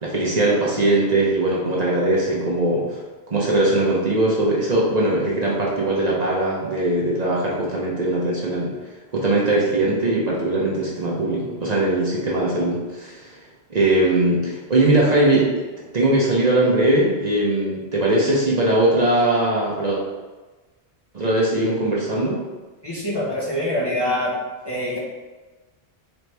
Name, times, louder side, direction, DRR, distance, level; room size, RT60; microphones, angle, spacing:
voice 1, 0.0-3.0 3.3-8.7 9.1-13.4 13.7-15.7 15.9-20.0 21.1-22.4, right 2 dB, 45° right, -4 dB, 0.7 m, -20 dB
voice 2, 22.8-24.3 24.6-25.0, left 1 dB, 30° left, -7 dB, 0.6 m, -24 dB
4.2 x 2.9 x 3.3 m, 1.2 s
omnidirectional pair, 1.1 m